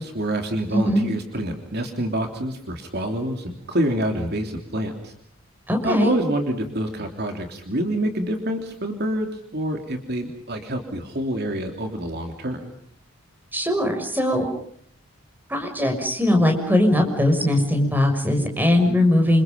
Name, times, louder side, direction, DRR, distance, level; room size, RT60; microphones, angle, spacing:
voice 1, 0.0-5.1 5.8-12.7, right 1 dB, 50° right, 4 dB, 3.2 m, -27 dB
voice 2, 0.7-1.1 5.7-6.1 13.5-14.5 15.5-19.4, left 1 dB, 10° right, 4 dB, 6.4 m, -20 dB
29.0 x 28.0 x 5.3 m, 0.64 s
head